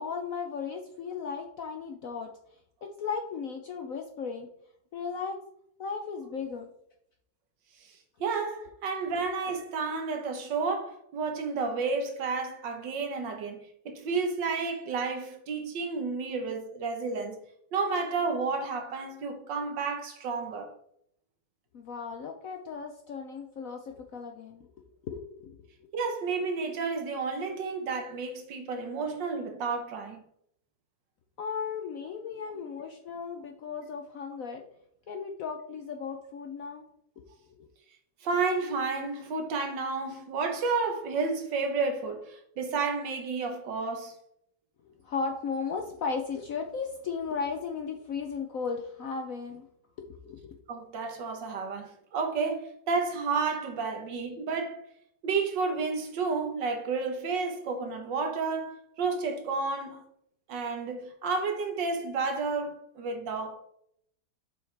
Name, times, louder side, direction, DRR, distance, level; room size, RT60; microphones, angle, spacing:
voice 1, 0.0-2.3 2.8-4.5 4.9-5.4 5.8-6.7 21.7-25.9 31.4-34.6 35.1-36.8 37.2-37.3 45.0-49.7 50.0-50.6, left 5 dB, 65° left, 0.8 m, -36 dB
voice 2, 7.8-17.4 17.7-20.7 25.9-30.2 32.5-32.6 38.2-44.2 50.7-54.8 55.2-60.0 60.5-63.6, right 4 dB, 70° right, 1.7 m, -31 dB
7.3 x 5.6 x 3.3 m
omnidirectional pair, 2.1 m